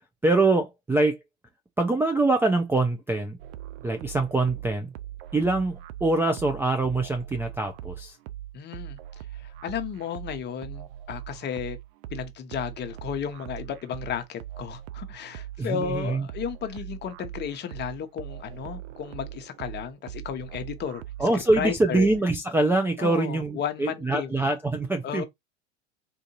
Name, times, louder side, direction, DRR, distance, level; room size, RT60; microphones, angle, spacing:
voice 1, 0.2-1.2 1.8-3.4 3.8-4.9 5.3-8.2 15.6-16.3 21.2-25.2, right 2 dB, 5° right, 0.4 m, -24 dB
sound 1, 3.4-22.2, right 13 dB, 55° right, 0.6 m, -41 dB
voice 2, 8.5-11.8 12.1-22.1 23.0-24.4 25.0-25.3, left 8 dB, 30° left, 0.8 m, -34 dB
3.8 x 2.6 x 2.9 m
hypercardioid pair, 90°, 33 cm